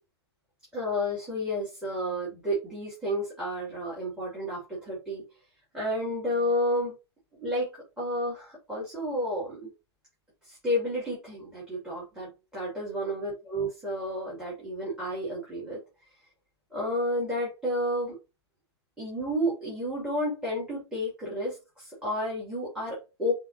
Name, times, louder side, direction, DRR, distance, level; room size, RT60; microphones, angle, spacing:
voice 1, 0.7-5.2 5.7-6.9 7.4-9.7 10.4-15.8 16.7-18.1 19.0-23.3, equal, 5° right, -6 dB, 2.4 m, -31 dB
5.4 x 2.9 x 2.7 m, 0.28 s
hypercardioid pair, 115°, 14 cm